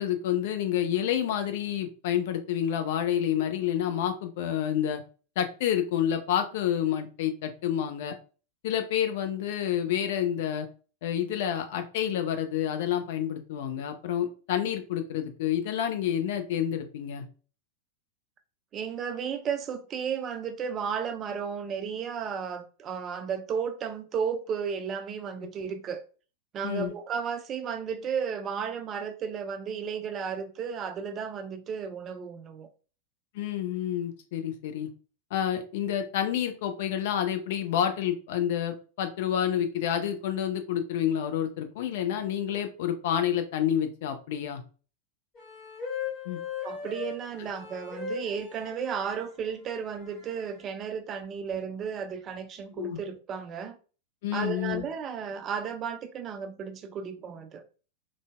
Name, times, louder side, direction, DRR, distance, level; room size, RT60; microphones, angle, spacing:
voice 1, 0.0-5.0 5.4-8.2 8.6-10.7 11.0-17.3 26.6-26.9 33.3-34.9 35.3-44.6 46.3-46.4 52.8-53.0 54.2-54.8, left 10 dB, 55° left, 0.4 m, -29 dB
voice 2, 18.7-26.0 26.5-32.7 46.6-53.8 54.3-57.6, right 7 dB, 30° right, 0.4 m, -34 dB
sound 1, 45.3-49.2 50.0-50.6, left 6 dB, 25° left, 1.5 m, -38 dB
3.8 x 2.0 x 2.3 m
figure-of-eight pair, 90°, 0 cm